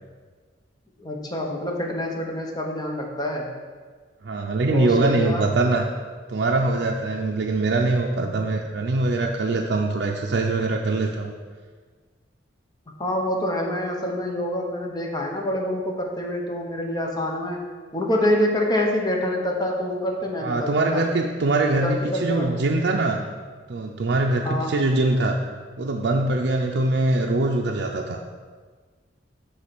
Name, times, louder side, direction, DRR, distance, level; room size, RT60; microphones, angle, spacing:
voice 1, 1.0-3.5 4.7-5.5 13.0-17.6 17.9-21.0 21.8-22.6 24.4-24.7, left 1 dB, 20° left, 0 dB, 1.0 m, -26 dB
voice 2, 4.2-5.9 6.3-11.3 20.4-23.3 23.7-25.4 25.8-28.2, right 2 dB, 65° right, 0 dB, 0.5 m, -23 dB
8.0 x 3.2 x 6.0 m, 1.5 s
head